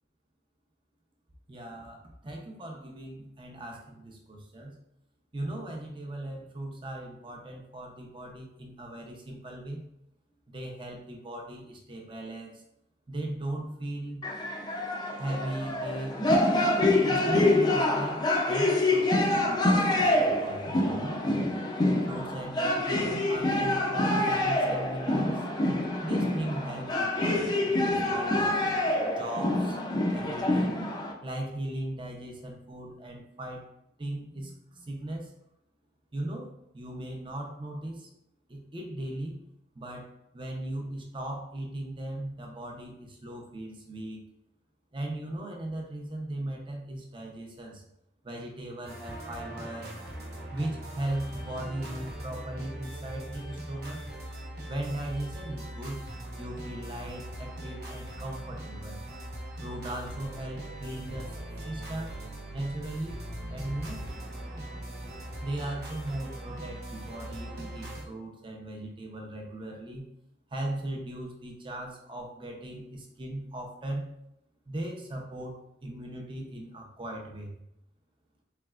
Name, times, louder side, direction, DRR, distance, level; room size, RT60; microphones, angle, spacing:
voice 1, 1.5-4.8 5.3-9.8 10.5-12.6 13.1-14.3 15.2-16.2 17.1-21.2 22.1-25.5 26.0-28.4 29.0-29.8 30.1-30.8 31.2-33.7 34.0-35.3 36.1-38.1 38.5-39.4 39.7-40.1 40.3-44.2 44.9-47.8 48.2-49.9 50.5-54.0 54.7-56.0 56.4-59.0 59.6-62.2 62.5-64.0 65.4-70.1 70.5-74.1 74.7-77.6, right 1 dB, 30° right, 1 dB, 0.6 m, -38 dB
sound 1, 14.2-31.1, left 1 dB, 25° left, 0.4 m, -26 dB
sound 2, 48.8-68.0, right 1 dB, 60° right, 1.0 m, -40 dB
4.1 x 3.3 x 2.4 m, 0.80 s
head